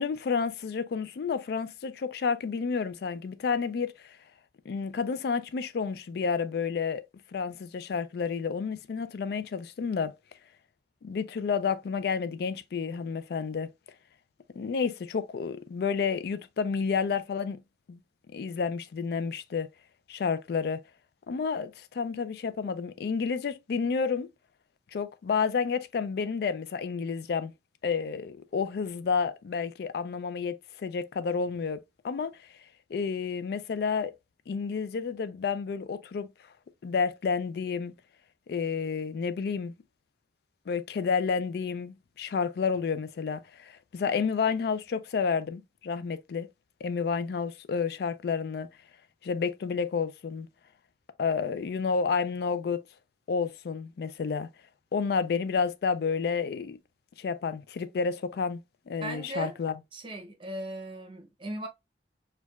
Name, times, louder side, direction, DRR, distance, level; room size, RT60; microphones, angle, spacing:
voice 1, 0.0-4.2 4.7-7.1 7.3-10.1 11.0-13.7 14.6-17.6 17.9-18.0 18.3-19.7 20.1-20.8 21.3-24.3 24.9-27.5 27.8-32.4 32.9-34.1 34.5-36.3 36.8-37.9 38.5-39.7 40.7-46.5 46.8-48.7 49.2-50.5 51.2-52.8 53.3-54.5 54.9-56.8 57.2-58.6 58.9-59.7, left 5 dB, 60° left, 0.3 m, -30 dB
voice 2, 59.0-59.6 59.9-61.7, right 1 dB, 30° right, 0.7 m, -37 dB
4.4 x 2.3 x 2.3 m
head